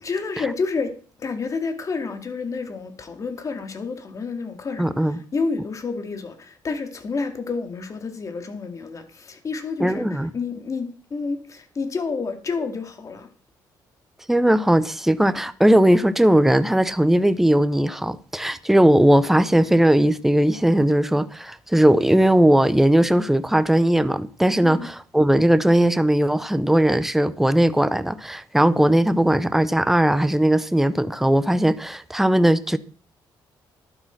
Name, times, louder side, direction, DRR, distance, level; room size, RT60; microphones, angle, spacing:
voice 1, 0.0-13.3 24.6-24.9, left 4 dB, 40° left, 2.3 m, -29 dB
voice 2, 4.8-5.2 9.8-10.3 14.3-32.8, right 1 dB, 5° right, 0.8 m, -18 dB
11.5 x 7.9 x 5.9 m
cardioid pair, 85°, 8 cm